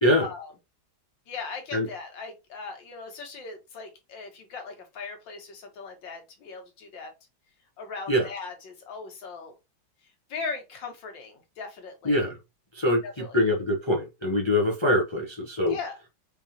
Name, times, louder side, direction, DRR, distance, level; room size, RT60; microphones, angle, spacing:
voice 1, 0.1-0.5 1.3-7.1 7.8-9.5 10.3-12.3 13.0-13.4 15.7-15.9, left 4 dB, 65° left, 4 dB, 1.9 m, -39 dB
voice 2, 12.0-12.4 12.7-15.8, left 1 dB, 45° left, 1 dB, 0.3 m, -24 dB
5.0 x 3.5 x 2.8 m, 0.24 s
omnidirectional pair, 2.2 m